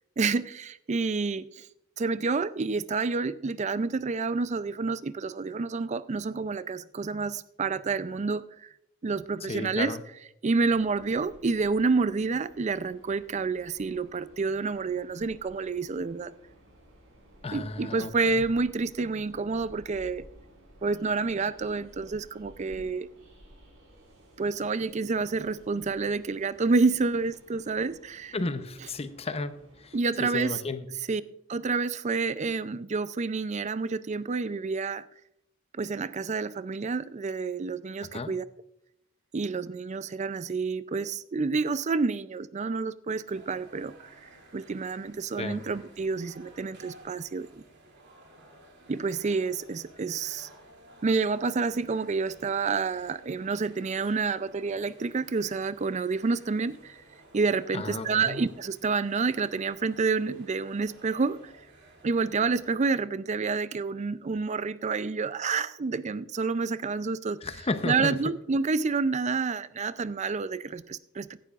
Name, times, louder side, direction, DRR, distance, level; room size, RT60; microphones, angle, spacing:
voice 1, 0.2-1.7 2.0-8.7 9.0-10.0 10.4-16.3 17.5-20.2 20.8-23.1 24.4-28.4 29.9-30.6 31.1-31.2 31.5-35.0 35.7-38.4 39.3-43.9 44.5-47.6 48.9-50.5 51.0-57.0 57.3-61.5 62.0-67.4 67.8-71.4, right 4 dB, 35° right, 0.4 m, -29 dB
voice 2, 9.5-10.0 17.4-18.4 28.3-29.9 30.2-30.9 38.1-38.3 45.4-45.6 57.7-58.4 67.4-68.2, left 3 dB, 30° left, 0.7 m, -33 dB
Train, 10.7-30.2, equal, 75° right, 4.9 m, -55 dB
sound 1, 43.2-62.8, right 1 dB, 55° right, 2.8 m, -54 dB
16.0 x 11.5 x 2.4 m
head